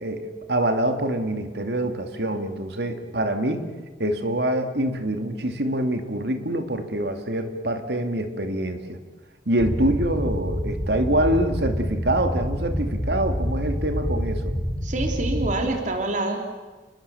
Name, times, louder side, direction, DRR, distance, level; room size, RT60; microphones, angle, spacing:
voice 1, 0.0-3.6 4.0-9.0 9.5-14.5, right 1 dB, 65° right, 7 dB, 2.6 m, -25 dB
sound 1, 9.6-15.5, equal, 25° right, 3.9 m, -27 dB
voice 2, 14.8-16.6, right 2 dB, 45° right, 3 dB, 3.4 m, -26 dB
30.0 x 21.0 x 7.1 m, 1.3 s
head